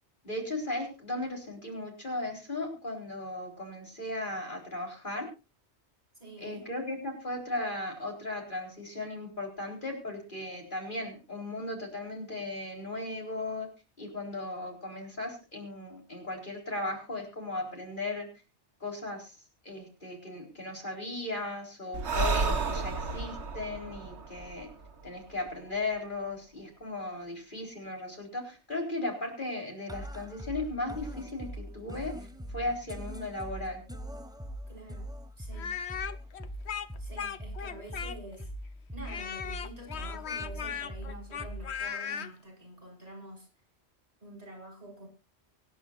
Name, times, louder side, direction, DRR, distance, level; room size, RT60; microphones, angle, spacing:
voice 1, 0.2-5.3 6.4-13.7 14.0-18.3 18.8-19.4 19.6-24.7 25.0-32.1 32.5-33.8, left 2 dB, 45° left, 4.4 m, -36 dB
voice 2, 6.2-6.7 34.7-35.1 35.4-35.8 37.0-38.5 38.9-43.5 44.2-45.1, right 1 dB, 35° right, 5.6 m, -47 dB
Breathing, 21.9-25.5, right 4 dB, 75° right, 1.7 m, -32 dB
sound 1, 29.9-41.9, equal, 5° right, 0.9 m, -42 dB
Speech, 35.5-38.4 39.1-42.3, left 7 dB, 70° left, 1.2 m, -37 dB
25.0 x 10.5 x 2.5 m
omnidirectional pair, 1.2 m